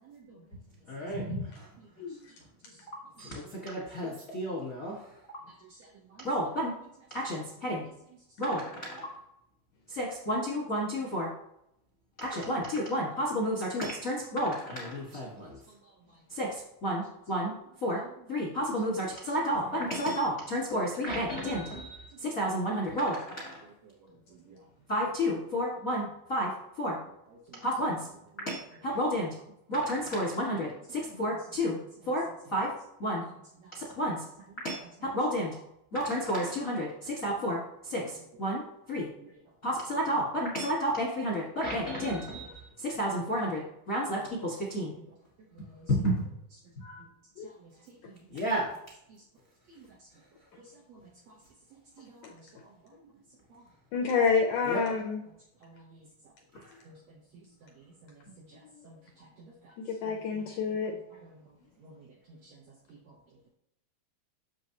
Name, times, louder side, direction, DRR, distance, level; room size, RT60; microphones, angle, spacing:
voice 1, 0.9-1.7 2.9-5.1 6.2-6.7 7.1-7.8 8.4-9.1 9.9-11.3 12.2-15.6 16.3-17.5 17.8-18.0 18.3-23.6 24.9-26.5 26.8-27.0 27.6-28.1 28.5-29.3 29.7-31.8 32.1-32.2 32.5-32.7 33.0-33.2 33.7-34.2 34.6-34.8 35.1-35.6 35.9-38.6 38.9-39.1 39.6-43.6 43.9-44.9 45.9-46.1 46.8-46.9 48.3-48.8 54.6-54.9 56.5-56.7, equal, 45° left, -4 dB, 1.0 m, -31 dB
voice 2, 2.0-2.3 47.4-47.5 48.0-48.1 52.2-52.3 53.9-55.2 58.7-58.8 59.9-60.9, left 5 dB, 80° left, 3 dB, 1.8 m, -28 dB
voice 3, 45.5-45.9 47.6-47.7 50.9-51.0 51.3-51.4 52.0-52.5 55.6-56.0 56.9-57.0 58.5-58.6 58.8-59.5 60.1-60.4 61.8-62.1 62.4-62.6, right 3 dB, 70° right, -2 dB, 1.7 m, -53 dB
7.8 x 6.9 x 2.9 m, 0.79 s
omnidirectional pair, 4.2 m